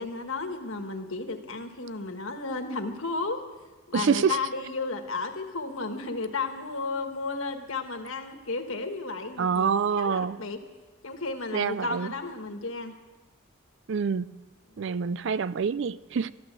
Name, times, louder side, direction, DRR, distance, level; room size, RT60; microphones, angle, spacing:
voice 1, 0.0-3.4 3.9-9.7 10.0-10.6 11.0-12.9 14.7-14.8, left 3 dB, 75° left, 1.5 m, -33 dB
voice 2, 3.9-4.4 9.4-10.4 11.5-12.1 13.9-14.3 14.8-16.3, right 6 dB, 60° right, 0.4 m, -26 dB
13.0 x 12.0 x 7.5 m
head